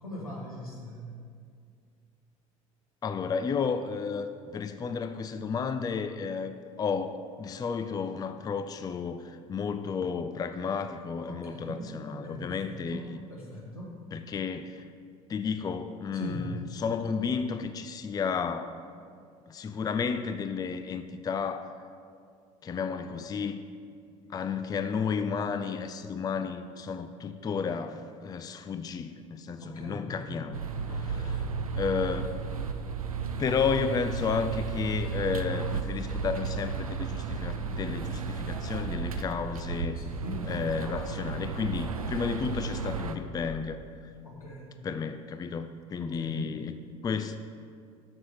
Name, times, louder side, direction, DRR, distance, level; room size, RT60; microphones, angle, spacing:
voice 1, 0.0-1.1 11.3-13.0 13.3-13.9 16.1-16.6 29.6-30.4 30.9-31.6 39.9-40.5 44.2-44.8 46.0-46.5, equal, 85° left, -3 dB, 1.5 m, -40 dB
voice 2, 3.0-13.2 14.1-14.9 15.3-18.8 19.5-21.8 22.6-23.6 24.3-30.6 30.9-31.5 31.7-32.4 33.4-40.0 40.4-44.1 44.8-46.7 47.0-47.4, left 5 dB, 20° left, 9 dB, 0.4 m, -32 dB
sound 1, 30.5-43.2, right 5 dB, 85° right, 0.4 m, -34 dB
7.2 x 6.3 x 6.6 m, 2.2 s
figure-of-eight pair, 60°, 18 cm